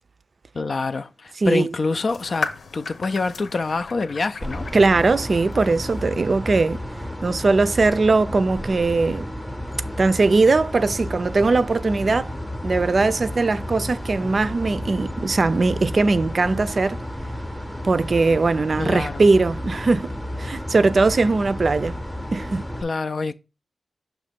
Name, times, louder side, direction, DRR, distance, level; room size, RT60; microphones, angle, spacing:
voice 1, 0.5-4.7 18.8-19.2 22.8-23.3, left 3 dB, 55° left, 0.4 m, -26 dB
voice 2, 1.4-1.8 4.7-6.8 7.2-9.3 10.0-12.3 12.6-17.0 17.8-20.1 20.4-21.9 22.3-22.6, right 3 dB, 50° right, 0.4 m, -20 dB
sound 1, 2.1-6.1, left 3 dB, 85° left, 1.1 m, -36 dB
sound 2, 4.4-22.8, equal, 5° left, 0.8 m, -32 dB
6.5 x 3.0 x 5.1 m
wide cardioid pair, 110°, 0 cm